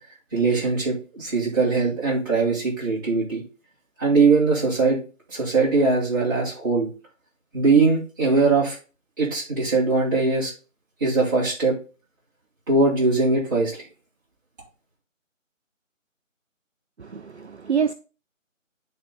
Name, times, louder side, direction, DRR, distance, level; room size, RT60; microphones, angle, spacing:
voice 1, 0.3-3.4 4.0-5.0 5.3-6.9 7.5-8.8 9.2-10.5 11.0-11.7 12.7-13.8, right 3 dB, 15° right, 2.1 m, -21 dB
voice 2, 17.0-17.9, right 7 dB, 55° right, 0.5 m, -26 dB
8.7 x 3.9 x 3.8 m
figure-of-eight pair, 160°, 39 cm